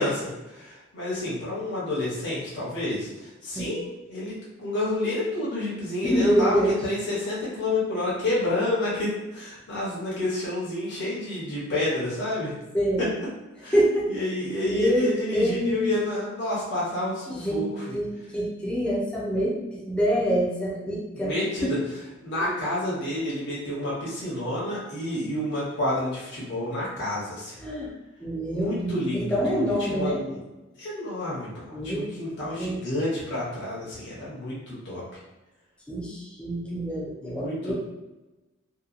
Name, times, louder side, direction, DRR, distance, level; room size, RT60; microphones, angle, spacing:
voice 1, 0.0-3.1 3.4-12.5 13.0-13.1 13.6-13.7 14.1-17.8 21.1-21.8 22.2-27.6 28.5-30.4 30.8-35.0 37.2-37.7, left 1 dB, 55° left, -8 dB, 0.8 m, -29 dB
voice 2, 6.0-6.8 12.7-13.1 13.7-14.2 14.6-15.8 17.3-17.7 17.9-19.6 19.9-21.8 22.4-22.5 27.6-27.9 28.2-30.2 31.7-32.1 32.4-32.8 35.9-37.7, equal, 5° left, -6 dB, 0.5 m, -26 dB
2.7 x 2.2 x 2.4 m, 1.1 s
head